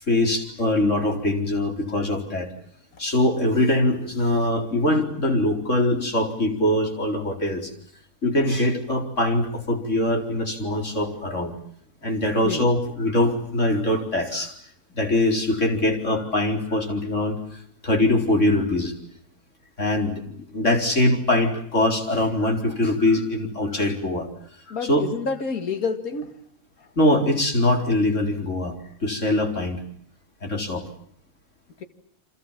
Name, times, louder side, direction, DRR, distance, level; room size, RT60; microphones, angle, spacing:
voice 1, 0.1-2.5 3.0-7.6 8.2-11.5 12.0-14.5 15.0-17.4 17.8-18.9 19.8-20.1 20.5-24.3 24.7-25.1 27.0-28.7 29.0-29.8 30.4-30.8, left 1 dB, 50° left, 3 dB, 4.7 m, -22 dB
voice 2, 24.7-26.3 31.8-31.9, left 5 dB, 70° left, 7 dB, 2.5 m, -28 dB
29.0 x 25.5 x 7.4 m, 0.63 s
omnidirectional pair, 1.6 m